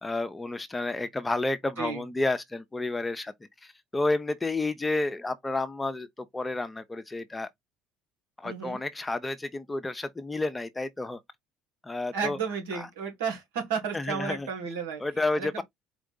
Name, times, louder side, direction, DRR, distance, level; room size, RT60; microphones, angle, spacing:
voice 1, 0.0-3.3 3.6-7.5 8.4-11.2 11.8-12.4 12.7-12.9 13.9-14.5 15.0-15.6, left 2 dB, 15° left, 0.8 m, -30 dB
voice 2, 8.4-8.8 12.1-15.0 15.3-15.6, right 6 dB, 75° right, 1.4 m, -32 dB
4.6 x 2.4 x 3.9 m
hypercardioid pair, 60°, 0 cm